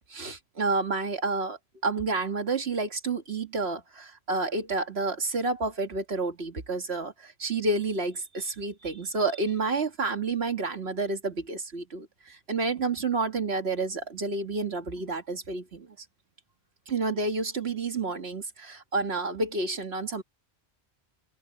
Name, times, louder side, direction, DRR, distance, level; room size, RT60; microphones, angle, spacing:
voice 1, 0.0-15.9 16.9-20.2, right 3 dB, 75° right, 2.0 m, -30 dB
omnidirectional pair, 1.1 m